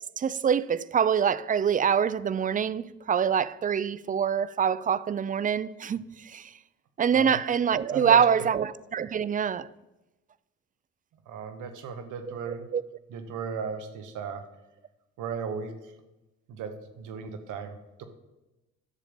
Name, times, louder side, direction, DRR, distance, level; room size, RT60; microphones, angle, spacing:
voice 1, 0.2-6.5 7.0-9.7 12.3-12.8, right 7 dB, 30° right, 0.4 m, -25 dB
voice 2, 7.9-8.5 11.3-12.7 13.1-14.4 15.2-15.9 16.5-18.0, right 6 dB, 85° right, 1.1 m, -36 dB
10.5 x 6.8 x 5.1 m
cardioid pair, 90°, 30 cm